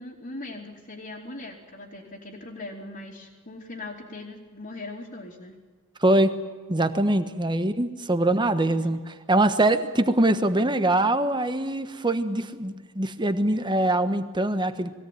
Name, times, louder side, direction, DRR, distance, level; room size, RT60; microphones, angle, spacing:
voice 1, 0.0-5.6 8.2-8.3 8.7-9.0, left 2 dB, 45° left, -4 dB, 2.9 m, -40 dB
voice 2, 6.0-6.4 6.7-15.0, right 1 dB, 20° right, 9 dB, 1.2 m, -23 dB
22.0 x 17.0 x 9.3 m, 1.5 s
head